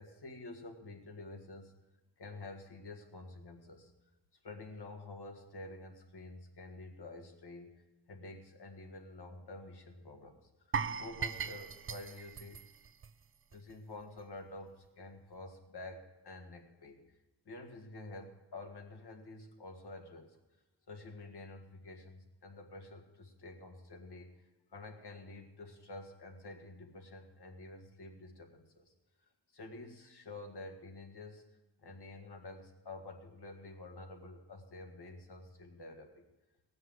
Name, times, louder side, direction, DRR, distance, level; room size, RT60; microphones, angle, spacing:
voice 1, 0.0-1.7 2.2-3.9 4.4-7.7 8.1-12.6 13.5-17.2 17.5-20.4 20.9-24.4 24.7-28.9 29.2-31.4 31.8-36.2, left 2 dB, 70° left, 3 dB, 1.9 m, -49 dB
sound 1, 10.7-13.7 14.0-14.2 14.7-14.8, right 6 dB, 35° right, 0.4 m, -39 dB
17.0 x 6.4 x 7.7 m, 1.0 s
cardioid pair, 60°, 41 cm